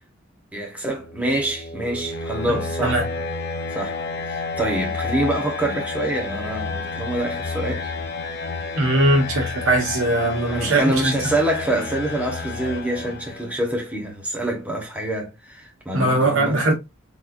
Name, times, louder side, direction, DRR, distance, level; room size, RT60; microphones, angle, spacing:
voice 1, 0.5-3.1 3.7-4.0 4.3-7.9 10.4-16.7, right 1 dB, 5° right, 1.1 m, -26 dB
sound 1, 0.9-13.7, left 4 dB, 50° left, 0.7 m, -30 dB
voice 2, 8.7-11.1 15.9-16.7, right 2 dB, 70° right, 1.3 m, -20 dB
4.0 x 3.3 x 2.6 m
head